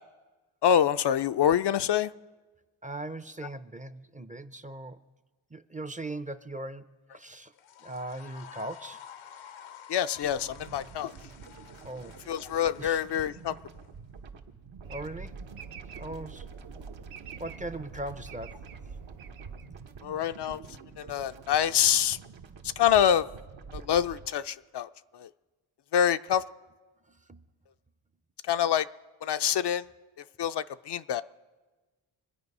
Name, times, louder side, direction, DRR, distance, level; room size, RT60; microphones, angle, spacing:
voice 1, 0.6-2.1 9.9-11.1 12.3-13.6 20.0-20.6 21.0-22.2 22.8-23.3 23.7-25.3 25.9-26.4 28.5-28.9 29.2-29.9 30.4-31.2, left 9 dB, 60° left, 11 dB, 0.5 m, -26 dB
voice 2, 2.8-5.0 5.5-6.9 7.1-7.5 7.8-9.0 11.8-12.2 12.8-13.0 14.9-15.3 16.0-16.5 17.4-18.6 27.1-27.4, right 1 dB, 15° right, 12 dB, 0.6 m, -39 dB
sound 1, 7.5-13.9, left 9 dB, 80° left, 0.9 m, -50 dB
sound 2, 10.2-24.3, right 5 dB, 65° right, 1.2 m, -48 dB
sound 3, 14.8-20.2, right 5 dB, 85° right, 0.9 m, -45 dB
25.0 x 8.9 x 5.4 m, 1.3 s
cardioid pair, 65°, 48 cm